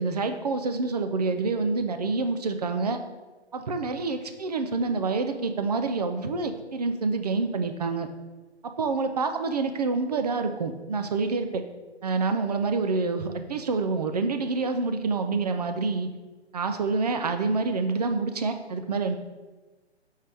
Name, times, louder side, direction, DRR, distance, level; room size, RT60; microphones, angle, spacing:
voice 1, 0.0-3.0 3.5-8.1 8.8-11.6 12.0-16.1 16.5-19.2, right 4 dB, 35° right, 7 dB, 0.5 m, -27 dB
6.2 x 4.5 x 3.4 m, 1.2 s
figure-of-eight pair, 140°, 34 cm